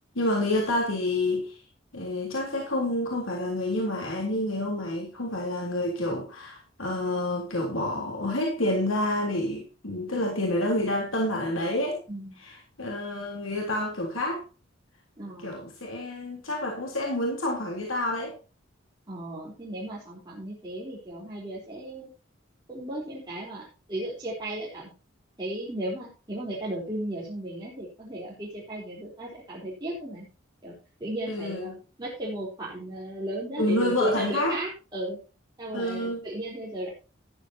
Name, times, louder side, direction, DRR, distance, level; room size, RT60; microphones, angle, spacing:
voice 1, 0.2-1.6 1.9-12.0 12.8-14.4 15.4-18.3 31.3-31.7 33.6-34.5 35.7-36.2, left 1 dB, 90° left, 0 dB, 3.6 m, -28 dB
voice 2, 15.2-15.6 19.1-22.1 22.7-24.9 25.4-30.3 30.6-35.2 35.6-36.9, right 1 dB, 20° right, -7 dB, 3.8 m, -35 dB
13.5 x 11.0 x 2.9 m, 0.33 s
head